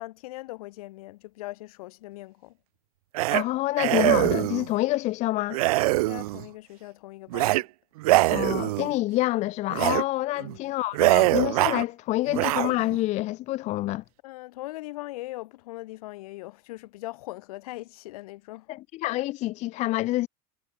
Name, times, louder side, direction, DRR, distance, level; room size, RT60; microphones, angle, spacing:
voice 1, 0.0-2.6 6.1-7.6 10.4-10.7 14.2-18.7, left 19 dB, 80° left, 2.6 m, -40 dB
sound 1, 3.1-3.4 3.8-4.7 5.5-6.5 7.3-7.6 8.0-8.9 9.7-10.0 10.4-10.6 10.9-11.8 12.3-13.0, right 19 dB, 80° right, 1.3 m, -23 dB
voice 2, 3.3-5.6 8.3-14.0 18.7-20.3, left 17 dB, 40° left, 0.5 m, -27 dB
supercardioid pair, 135°, 19 cm